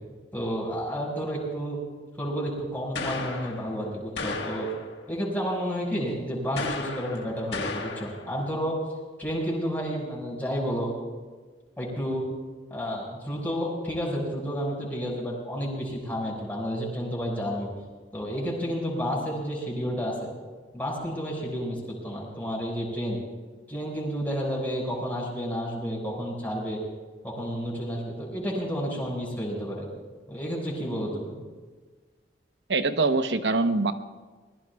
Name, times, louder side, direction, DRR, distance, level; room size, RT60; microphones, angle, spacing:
voice 1, 0.3-1.8 2.2-4.7 5.1-8.8 9.2-10.9 11.8-12.2 12.7-17.7 18.1-20.3 20.7-23.2 23.7-26.8 27.2-29.9 30.3-31.4, equal, 10° left, -4 dB, 5.5 m, -31 dB
sound 1, 3.0-3.8 4.2-5.0 6.6-8.3, left 3 dB, 75° left, 1.6 m, -34 dB
voice 2, 32.7-33.9, right 3 dB, 70° right, 9 dB, 0.9 m, -23 dB
24.5 x 20.5 x 2.4 m, 1.4 s
head